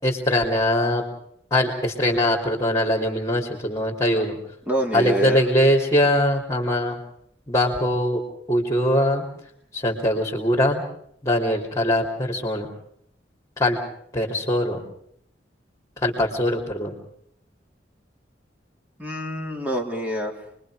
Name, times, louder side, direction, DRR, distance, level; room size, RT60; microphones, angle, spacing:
voice 1, 0.0-1.0 1.5-4.4 4.9-7.0 7.5-8.2 8.5-9.2 9.7-10.8 11.2-12.7 13.6-13.8 14.1-14.8 16.0-16.9, left 1 dB, 20° left, -3 dB, 3.4 m, -22 dB
voice 2, 4.7-5.4 19.0-20.3, right 1 dB, 10° right, 2 dB, 3.1 m, -26 dB
29.0 x 22.5 x 5.1 m, 0.69 s
head